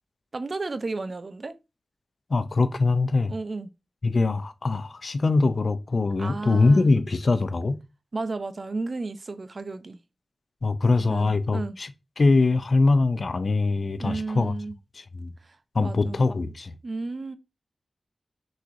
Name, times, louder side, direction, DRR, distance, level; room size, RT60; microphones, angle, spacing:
voice 1, 0.3-1.5 3.3-3.7 6.2-6.9 8.1-10.0 11.1-11.8 14.0-14.8 15.4-16.3 16.8-17.4, right 3 dB, 50° right, 0.6 m, -33 dB
voice 2, 2.3-3.3 4.0-7.8 10.6-11.9 12.2-14.5 15.0-15.3 15.7-16.7, left 3 dB, 55° left, 0.5 m, -22 dB
6.2 x 3.0 x 2.6 m
wide cardioid pair, 70°, 0 cm